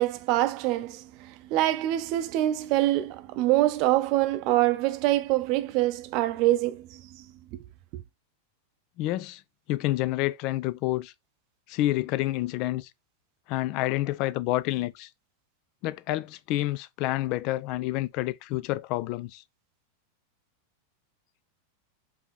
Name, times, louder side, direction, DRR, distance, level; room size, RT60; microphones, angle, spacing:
voice 1, 0.0-7.0 7.5-7.6 7.9-8.0, right 15 dB, 40° right, 0.6 m, -25 dB
voice 2, 9.0-9.4 9.7-11.1 11.7-12.9 13.5-15.1 15.8-19.4, left 16 dB, 40° left, 0.3 m, -28 dB
5.1 x 2.8 x 3.5 m
figure-of-eight pair, 90°, 0 cm